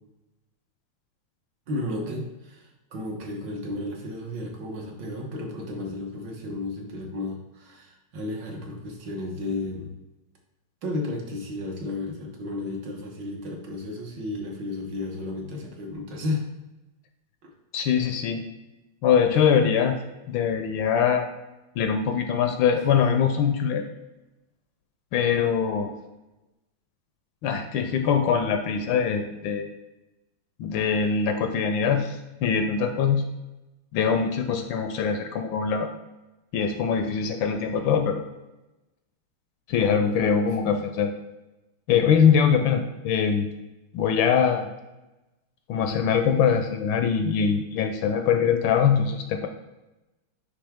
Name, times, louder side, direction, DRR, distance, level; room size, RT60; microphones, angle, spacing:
voice 1, 1.7-9.9 10.8-16.5 17.4-17.5 39.9-40.1, left 2 dB, 60° right, 0 dB, 1.6 m, -33 dB
voice 2, 17.7-18.4 19.0-20.0 20.3-21.3 21.8-23.8 25.1-25.9 27.4-29.7 30.6-33.3 33.9-35.9 36.5-38.2 39.7-41.1 41.9-43.5 43.9-44.7 45.7-49.5, left 7 dB, 75° left, 6 dB, 1.2 m, -23 dB
9.6 x 3.4 x 3.5 m, 1.0 s
omnidirectional pair, 2.3 m